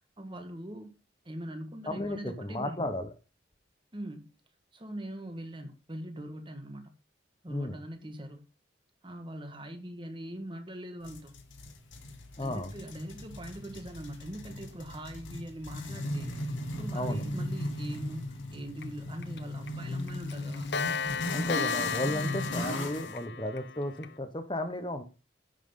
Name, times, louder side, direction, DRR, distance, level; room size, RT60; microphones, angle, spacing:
voice 1, 0.2-0.9 1.2-2.9 3.9-4.3 4.7-6.9 7.4-8.5 9.0-11.4 12.4-16.4 16.8-20.7 22.1-22.4, right 1 dB, 25° right, 1.6 m, -42 dB
voice 2, 1.9-3.1 7.5-7.8 12.4-12.7 16.9-17.2 21.3-25.0, left 1 dB, 25° left, 1.1 m, -34 dB
sound 1, 11.0-23.2, left 1 dB, 80° left, 2.2 m, -37 dB
Clock, 18.8-18.9 19.2-19.4 19.7-19.8 20.1-24.1, left 5 dB, 60° left, 0.8 m, -34 dB
10.5 x 6.1 x 5.7 m
head